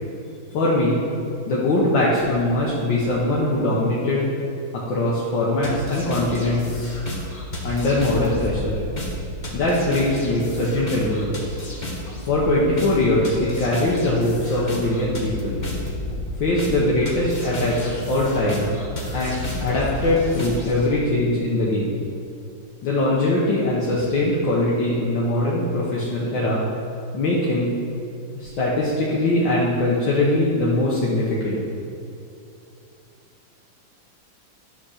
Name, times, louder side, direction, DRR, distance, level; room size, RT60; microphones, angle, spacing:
voice 1, 0.5-1.0 1.5-4.3 4.7-7.0 7.6-8.8 9.5-11.4 12.3-15.6 16.4-18.7 19.1-21.9 22.8-26.6 27.1-27.7 28.4-31.6, left 1 dB, 70° left, -5 dB, 1.8 m, -21 dB
sound 1, 5.6-20.9, left 1 dB, 30° left, 0.9 m, -32 dB
10.0 x 4.3 x 6.4 m, 2.6 s
omnidirectional pair, 2.2 m